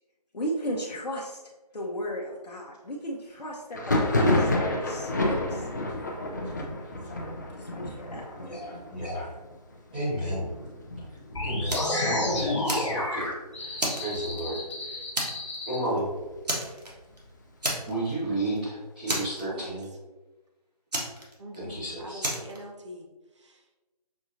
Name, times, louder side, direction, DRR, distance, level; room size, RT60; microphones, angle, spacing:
voice 1, 0.3-1.4 1.7-5.7 7.1-7.3 7.6-8.8, equal, 75° left, -3 dB, 0.8 m, -35 dB
Thunder, 3.7-13.2 13.5-14.2 14.4-15.4 15.8-17.5, left 1 dB, 30° left, 0.4 m, -31 dB
voice 2, 8.9-9.3 9.9-10.5 11.4-15.0 15.7-16.1 17.9-19.9 21.6-22.2, right 1 dB, 15° right, -11 dB, 0.8 m, -32 dB
sound 1, 11.3-15.8, left 1 dB, 45° left, 1.0 m, -30 dB
Fire, 11.7-12.0 12.4-13.3 13.8-14.7 15.1-15.6 15.8-16.0 16.4-17.2 17.6-18.2 18.5-18.6 19.1-19.9 20.9-21.7 22.2-22.6, right 1 dB, 80° right, 1.3 m, -31 dB
voice 3, 21.4-23.1 23.3-23.6, equal, 45° right, 1 dB, 0.8 m, -44 dB
6.0 x 2.6 x 2.6 m, 1.1 s
figure-of-eight pair, 160°, 21 cm